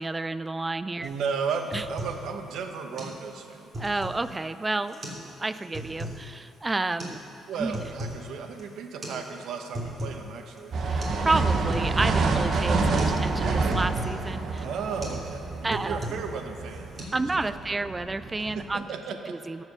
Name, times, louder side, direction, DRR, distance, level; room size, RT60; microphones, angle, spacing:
voice 1, 0.0-1.1 1.7-1.9 3.8-7.2 7.6-7.8 10.8-14.7 15.6-16.1 17.1-18.9 19.3-19.6, right 2 dB, 20° right, 13 dB, 0.4 m, -30 dB
sound 1, 1.0-1.2 1.5-2.2 2.6-2.7 3.0-3.2 3.5-4.3 4.9-5.3 5.5-6.2 7.0-7.2 7.5-8.2 8.5-8.6 9.0-9.2 9.5-10.2 10.6-10.7 11.0-11.2 11.5-12.2 12.6-12.7 13.0-13.2 13.5-14.2 14.6-14.7 15.0-15.2 15.5-16.3 16.6-17.0, right 1 dB, 35° right, 2.8 m, -37 dB
voice 2, 1.0-3.7 7.5-10.8 14.5-17.3 18.4-19.4, right 5 dB, 80° right, 6 dB, 0.9 m, -34 dB
sound 2, 10.7-18.7, right 3 dB, 60° right, 1.0 m, -28 dB
13.5 x 4.9 x 6.8 m, 2.8 s
cardioid pair, 90°, 0 cm